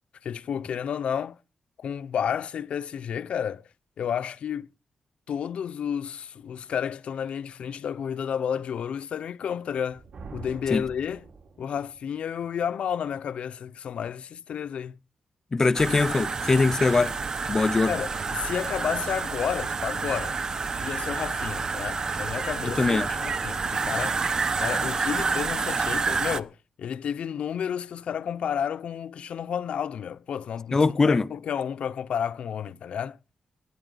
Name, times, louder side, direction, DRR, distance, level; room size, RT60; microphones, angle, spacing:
voice 1, 0.2-1.4 1.8-3.7 4.0-4.7 5.3-10.0 10.3-11.3 11.6-15.0 17.9-20.4 20.8-24.2 24.6-33.2, left 8 dB, 75° left, 0.8 m, -31 dB
Thunder, 9.7-12.0, right 4 dB, 60° right, 4.6 m, -45 dB
voice 2, 15.5-17.1 17.5-17.9 22.8-23.2 30.7-31.3, left 3 dB, 30° left, 0.6 m, -22 dB
sound 1, 15.7-26.4, right 4 dB, 35° right, 1.0 m, -29 dB
24.0 x 9.8 x 4.0 m
wide cardioid pair, 160°, 2 cm